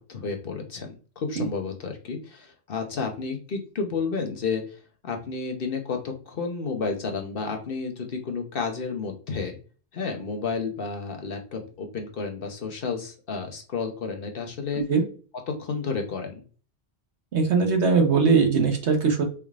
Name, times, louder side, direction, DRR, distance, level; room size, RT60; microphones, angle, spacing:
voice 1, 0.1-4.8 5.0-9.6 9.9-14.8 15.5-16.3, left 4 dB, 55° left, 3 dB, 1.0 m, -31 dB
voice 2, 17.3-19.3, right 5 dB, 75° right, 3 dB, 1.3 m, -20 dB
4.4 x 3.5 x 2.4 m, 0.39 s
omnidirectional pair, 1.1 m